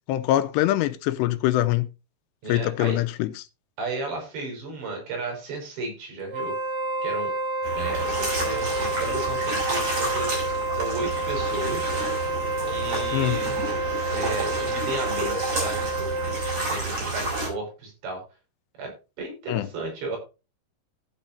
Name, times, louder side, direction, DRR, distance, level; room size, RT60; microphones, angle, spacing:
voice 1, 0.1-1.9 2.5-3.4 13.1-13.4 19.5-19.7, left 14 dB, 85° left, 2.9 m, -23 dB
voice 2, 2.4-3.0 3.8-6.5 7.0-7.3 7.7-10.3 10.7-11.9 12.7-13.5 14.1-18.2 18.8-20.2, right 3 dB, 85° right, 7.7 m, -34 dB
Wind instrument woodwind instrument, 6.3-16.9, right 2 dB, 65° right, 1.3 m, -29 dB
sound 1, 7.6-17.5, right 2 dB, 40° right, 7.4 m, -30 dB
15.0 x 8.9 x 2.7 m
omnidirectional pair, 4.9 m